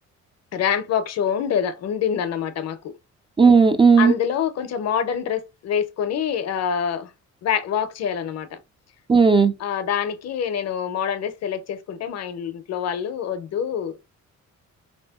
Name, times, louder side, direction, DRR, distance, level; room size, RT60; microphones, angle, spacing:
voice 1, 0.5-2.9 4.0-7.1 7.4-8.6 9.6-14.0, left 8 dB, 60° left, 0.5 m, -26 dB
voice 2, 3.4-4.1 9.1-9.5, right 5 dB, 20° right, 0.3 m, -14 dB
3.2 x 2.7 x 2.2 m
cardioid pair, 90°, 30 cm